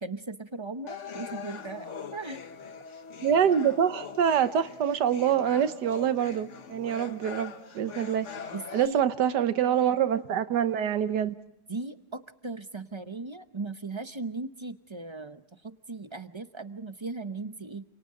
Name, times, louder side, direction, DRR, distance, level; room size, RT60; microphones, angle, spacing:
voice 1, 0.0-2.4 8.5-9.0 11.7-17.8, right 3 dB, 30° right, 10 dB, 0.6 m, -38 dB
sound 1, 0.9-8.9, left 6 dB, 50° left, 1.6 m, -42 dB
voice 2, 3.2-8.3 8.7-11.4, right 9 dB, 85° right, 12 dB, 1.6 m, -25 dB
30.0 x 28.0 x 3.8 m, 0.80 s
omnidirectional pair, 1.7 m